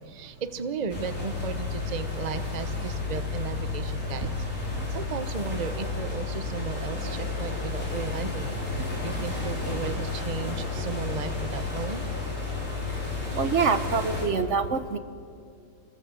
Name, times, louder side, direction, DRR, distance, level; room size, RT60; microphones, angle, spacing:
voice 1, 0.0-4.3 4.9-12.1, right 5 dB, 90° right, 9 dB, 0.3 m, -35 dB
sound 1, 0.9-14.3, left 3 dB, 35° left, 5.7 m, -32 dB
voice 2, 13.3-15.0, right 5 dB, 50° right, 10 dB, 0.9 m, -25 dB
27.5 x 20.0 x 7.9 m, 2.3 s
omnidirectional pair, 2.4 m